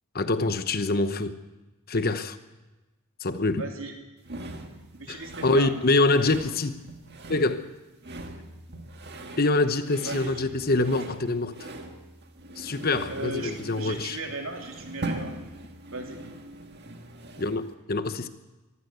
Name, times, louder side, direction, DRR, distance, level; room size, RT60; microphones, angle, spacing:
voice 1, 0.1-1.4 1.9-2.4 3.2-3.7 5.1-6.8 7.3-7.7 9.4-11.5 12.6-14.2 17.4-18.3, left 2 dB, 40° left, 1.0 m, -25 dB
voice 2, 3.6-3.9 5.0-5.7 10.0-10.3 13.1-15.3 15.9-16.2, right 2 dB, 65° right, 3.3 m, -36 dB
sound 1, 4.2-17.7, right 2 dB, 45° right, 1.9 m, -41 dB
23.5 x 14.5 x 8.1 m
head